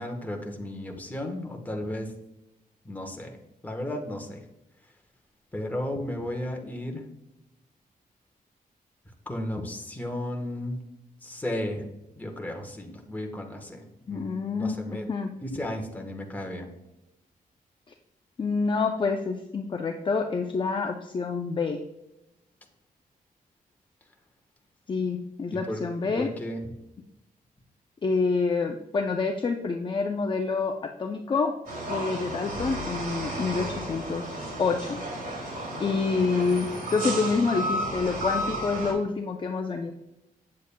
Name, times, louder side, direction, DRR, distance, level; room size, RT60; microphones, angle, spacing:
voice 1, 0.0-2.1 2.8-3.4 3.6-4.4 5.5-7.1 9.3-10.8 11.2-11.8 12.1-15.1 15.4-16.7 25.6-25.8 26.1-26.7, left 1 dB, 10° left, 2 dB, 1.1 m, -34 dB
voice 2, 14.1-15.3 18.4-21.8 24.9-26.3 28.0-31.5 31.9-35.0 35.8-39.9, left 4 dB, 35° left, 4 dB, 0.5 m, -27 dB
sound 1, 31.7-38.9, right 1 dB, 80° right, 2.7 m, -33 dB
8.5 x 7.5 x 2.2 m, 0.92 s
wide cardioid pair, 135°, 15 cm